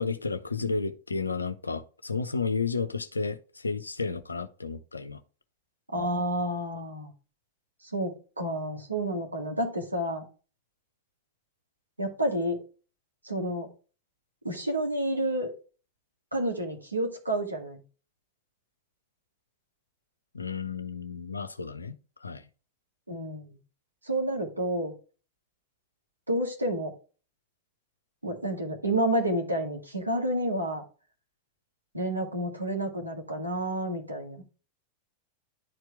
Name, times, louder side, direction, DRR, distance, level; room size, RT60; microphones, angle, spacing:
voice 1, 0.0-5.2 20.3-21.9 22.2-22.5, left 4 dB, 80° left, 0.7 m, -32 dB
voice 2, 5.9-7.1 7.8-10.3 12.0-12.6 13.2-13.7 14.4-15.5 16.3-17.8 23.1-23.6 24.0-24.9 26.3-27.0 28.2-30.8 31.9-34.4, right 1 dB, 85° right, 2.1 m, -30 dB
10.5 x 4.5 x 3.4 m
figure-of-eight pair, 90°, 0 cm